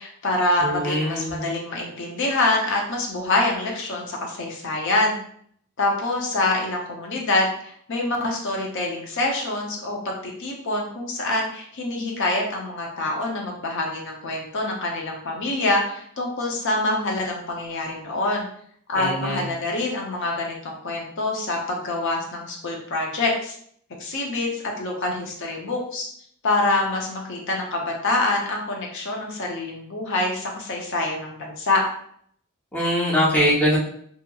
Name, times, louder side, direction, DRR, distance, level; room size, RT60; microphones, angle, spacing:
voice 1, 0.0-5.2 5.8-18.5 18.9-23.5 24.0-26.1 26.4-31.8, left 2 dB, 55° left, 0 dB, 0.5 m, -25 dB
voice 2, 0.6-1.4 19.0-19.4 32.7-33.8, equal, 10° left, -6 dB, 0.6 m, -22 dB
2.7 x 2.7 x 2.3 m, 0.63 s
head